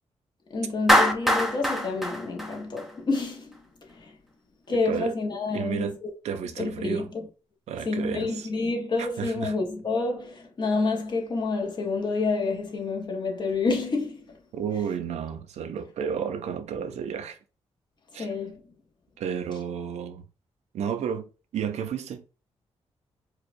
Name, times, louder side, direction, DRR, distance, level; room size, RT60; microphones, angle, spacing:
voice 1, 0.5-4.2 4.7-6.1 6.6-7.3 7.8-14.4 18.2-18.6, left 3 dB, 40° left, 1.0 m, -29 dB
Clapping, 0.9-3.2, equal, ahead, 0.6 m, -23 dB
voice 2, 4.7-5.1 5.5-6.0 6.2-7.1 7.7-8.5 9.0-9.5 14.5-17.4 18.1-18.3 19.2-20.2 20.7-22.3, right 7 dB, 85° right, 0.5 m, -32 dB
4.6 x 2.3 x 2.6 m
cardioid pair, 115°, 11 cm